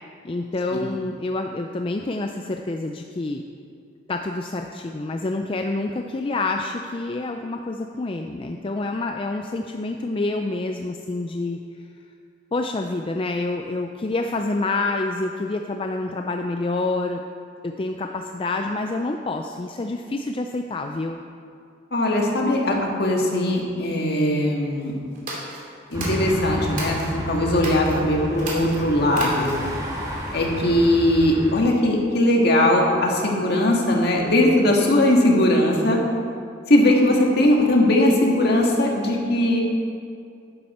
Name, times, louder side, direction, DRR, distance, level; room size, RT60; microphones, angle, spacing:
voice 1, 0.2-3.4 4.1-11.6 12.5-17.2 17.6-21.2, left 2 dB, 30° left, 4 dB, 0.4 m, -27 dB
voice 2, 21.9-24.9 25.9-29.5 30.3-36.0 36.7-39.6, left 1 dB, 55° left, 0 dB, 1.8 m, -19 dB
sound 1, 25.1-27.1 27.5-27.9 28.3-29.7, right 2 dB, 45° right, 2.7 m, -33 dB
sound 2, 25.9-31.5, equal, 20° right, 1.7 m, -31 dB
12.0 x 9.8 x 4.3 m, 2.4 s
head